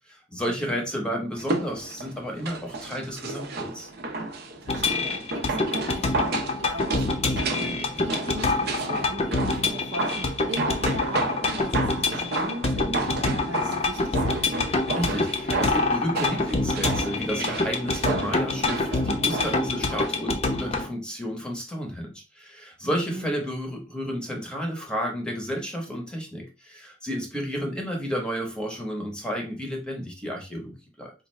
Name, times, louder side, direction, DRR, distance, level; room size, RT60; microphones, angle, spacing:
voice 1, 0.1-3.9 14.9-31.1, equal, 5° left, 1 dB, 0.8 m, -32 dB
sound 1, 1.4-20.2 20.5-20.6, right 2 dB, 60° right, 0.7 m, -32 dB
voice 2, 4.6-14.4 22.9-23.3, right 1 dB, 80° right, 3 dB, 0.9 m, -38 dB
sound 2, 4.7-20.9, left 3 dB, 35° left, 0.6 m, -26 dB
4.2 x 2.4 x 3.1 m, 0.30 s
head